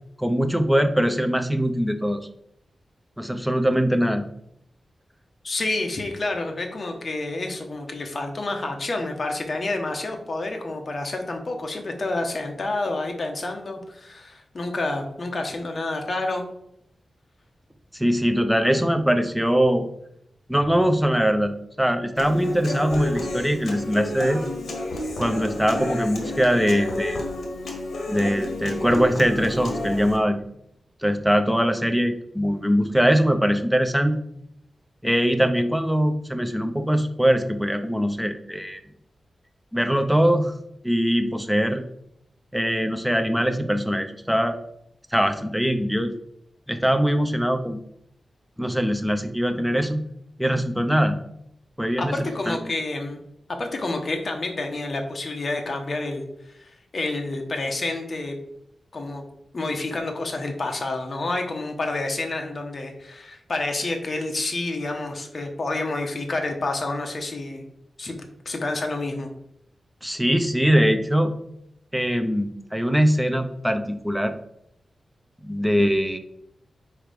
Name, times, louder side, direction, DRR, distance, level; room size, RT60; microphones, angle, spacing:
voice 1, 0.2-2.2 3.2-4.3 17.9-19.9 20.5-24.4 25.2-27.2 28.1-30.4 31.0-34.2 35.0-38.8 39.7-40.5 40.8-41.8 42.5-44.6 45.1-46.1 46.7-47.8 48.6-50.0 50.4-51.2 51.8-52.2 52.5-52.6 70.0-71.3 71.9-74.3 75.4-76.2, equal, ahead, 6 dB, 0.6 m, -22 dB
voice 2, 5.4-16.4 52.0-53.2 53.6-58.3 58.9-59.2 59.5-67.7 68.0-68.2 68.4-69.3, left 2 dB, 40° left, 3 dB, 1.1 m, -29 dB
Human voice / Acoustic guitar, 22.2-30.2, left 2 dB, 70° left, 1.4 m, -31 dB
4.8 x 4.6 x 5.1 m, 0.75 s
wide cardioid pair, 140°, 0 cm